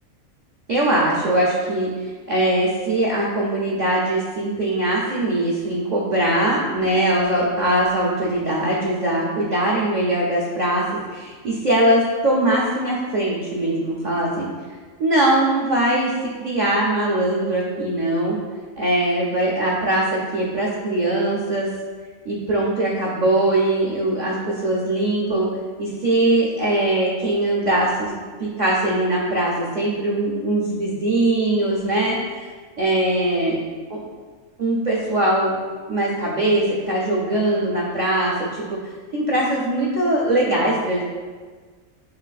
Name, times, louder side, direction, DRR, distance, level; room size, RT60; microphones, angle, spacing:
voice 1, 0.7-10.8 11.1-14.5 15.0-16.1 16.4-18.4 18.8-21.7 22.3-25.5 25.8-28.1 28.4-32.5 32.8-33.6 33.9-34.0 34.6-35.6 35.9-38.8 39.1-41.0, right 1 dB, 70° right, -4 dB, 0.4 m, -21 dB
6.3 x 2.4 x 2.3 m, 1.5 s
omnidirectional pair, 1.4 m